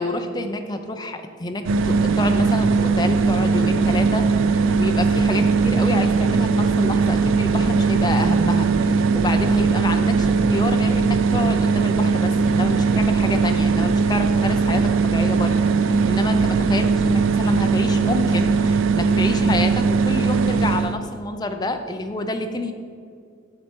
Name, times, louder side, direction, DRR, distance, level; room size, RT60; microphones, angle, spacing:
voice 1, 0.0-22.7, left 2 dB, 20° left, 6 dB, 0.4 m, -28 dB
sound 1, 1.6-20.9, right 4 dB, 65° right, 0.3 m, -19 dB
sound 2, 3.4-15.1, equal, 20° right, 1.0 m, -38 dB
7.5 x 5.7 x 4.4 m, 2.3 s
head